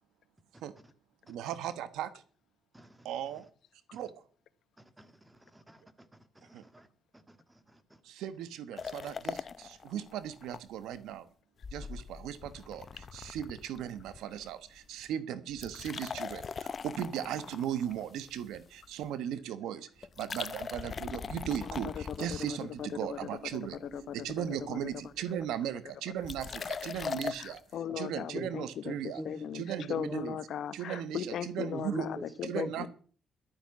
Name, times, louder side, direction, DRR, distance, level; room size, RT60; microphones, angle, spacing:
voice 1, 1.3-2.2 3.0-3.4 3.9-4.1 6.5-6.6 8.0-11.3 11.7-23.8 24.1-27.6 28.0-29.2 29.5-30.4 30.7-32.1 32.4-32.9, right 10 dB, 85° right, 14 dB, 1.1 m, -37 dB
voice 2, 2.7-3.1 3.9-4.0 4.8-6.1 6.4-6.9 7.1-8.0 28.3-28.5 28.8-30.3 31.7-32.7, right 1 dB, 10° right, 12 dB, 1.7 m, -44 dB
sound 1, 8.8-10.6 10.9-11.0 11.6-14.5 14.8-15.1 15.5-18.8 20.0-23.0 23.5-24.0 24.3-24.4 24.6-24.7 24.9-25.2 26.2-27.6, left 5 dB, 40° left, 0.7 m, -41 dB
voice 3, 21.6-23.4 23.8-24.9 27.0-29.6 29.9-32.9, left 8 dB, 70° left, 15 dB, 1.0 m, -39 dB
12.0 x 9.9 x 7.2 m, 0.42 s
cardioid pair, 90°, 0 cm